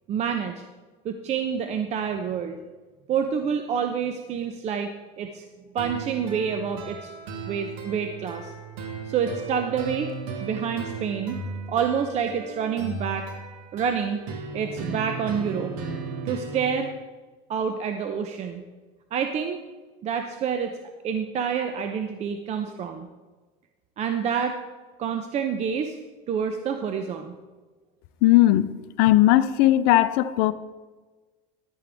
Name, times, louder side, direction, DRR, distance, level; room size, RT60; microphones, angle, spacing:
voice 1, 0.1-0.7 1.0-2.6 3.1-4.9 5.2-5.4 5.7-7.1 7.5-8.5 9.1-10.1 10.4-11.4 11.7-13.3 13.7-14.2 14.5-15.7 16.2-16.9 17.5-18.6 19.1-19.6 20.0-20.7 21.0-23.1 24.0-24.6 25.0-26.0 26.3-27.4, right 7 dB, 40° right, 0.7 m, -27 dB
sound 1, 5.8-16.8, right 4 dB, 80° right, 1.6 m, -36 dB
voice 2, 28.2-28.7 29.0-30.5, left 15 dB, 65° left, 0.6 m, -18 dB
11.5 x 8.8 x 3.5 m
supercardioid pair, 120°, 17 cm